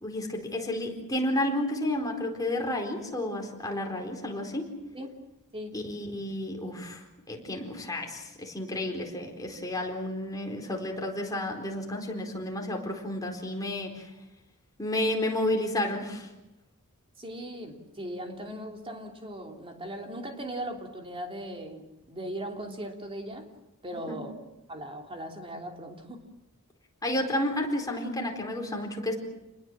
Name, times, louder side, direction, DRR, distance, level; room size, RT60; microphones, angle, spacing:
voice 1, 0.0-4.7 5.7-14.1 14.8-16.3 23.9-24.2 27.0-29.2, left 1 dB, 15° left, 1 dB, 4.3 m, -31 dB
voice 2, 17.2-23.5 23.8-24.4 24.7-26.2, right 1 dB, 25° right, 3 dB, 3.2 m, -38 dB
29.0 x 21.0 x 7.5 m, 0.96 s
head